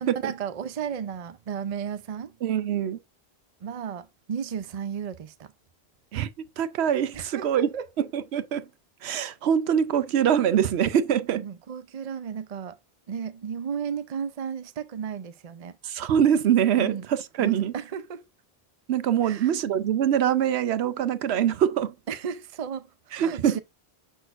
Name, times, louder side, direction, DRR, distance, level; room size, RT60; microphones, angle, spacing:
voice 1, 0.0-2.3 3.6-5.5 7.1-7.9 11.4-12.8 13.1-15.7 16.8-17.1 17.4-18.2 19.2-19.5 22.1-23.6, right 7 dB, 45° right, 0.6 m, -34 dB
voice 2, 2.4-3.0 6.1-6.3 6.6-8.7 9.0-11.4 15.8-17.7 18.9-21.9 23.1-23.6, right 9 dB, 90° right, 0.9 m, -24 dB
6.3 x 6.1 x 2.5 m
omnidirectional pair, 1.1 m